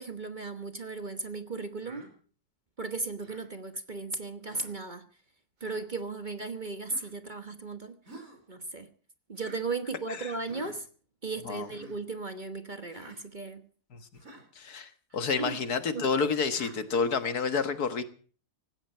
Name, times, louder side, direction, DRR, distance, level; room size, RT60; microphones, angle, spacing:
voice 1, 0.0-2.0 2.8-5.1 5.6-8.0 8.5-8.9 9.3-10.9 11.2-13.7 15.4-15.6 15.9-16.1, right 3 dB, 30° right, 9 dB, 1.3 m, -36 dB
Human voice, 1.8-2.1 3.2-3.5 4.5-4.8 5.6-5.8 6.9-7.1 8.1-8.4 9.4-9.6 10.4-10.8 11.6-12.0 12.9-13.2 14.2-14.5 15.4-15.7 16.5-16.8, right 1 dB, 55° right, 5.1 m, -49 dB
voice 2, 14.6-18.0, left 5 dB, 70° left, 10 dB, 2.0 m, -29 dB
18.5 x 16.5 x 4.5 m, 0.42 s
omnidirectional pair, 1.7 m